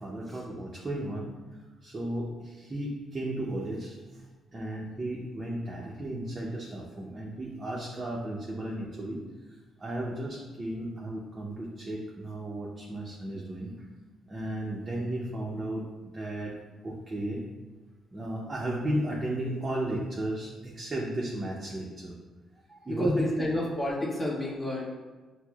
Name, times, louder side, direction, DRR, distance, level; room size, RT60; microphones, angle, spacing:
voice 1, 0.0-1.3 1.8-4.0 4.5-9.2 9.8-13.7 14.3-16.5 16.8-17.4 18.1-22.1 22.7-23.3, right 1 dB, 25° right, -4 dB, 0.6 m, -34 dB
voice 2, 22.9-24.8, left 1 dB, 25° left, -4 dB, 1.1 m, -30 dB
5.8 x 2.0 x 2.3 m, 1.3 s
cardioid pair, 90°, 0 cm